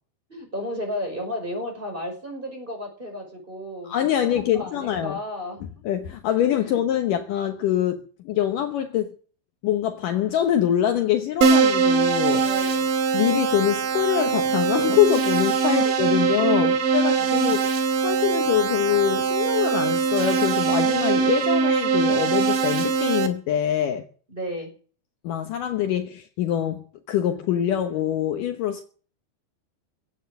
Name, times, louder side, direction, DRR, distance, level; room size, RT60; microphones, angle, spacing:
voice 1, 0.3-5.7 6.6-6.7 12.4-12.9 15.6-17.4 24.3-24.7, equal, 10° right, 5.7 m, -34 dB
voice 2, 3.8-5.2 5.8-9.1 9.6-12.4 13.1-17.8 18.0-24.1 25.2-28.8, left 10 dB, 70° left, 2.4 m, -24 dB
Keyboard (musical), 11.4-23.3, right 5 dB, 70° right, 3.7 m, -22 dB
16.5 x 9.0 x 9.2 m
omnidirectional pair, 4.3 m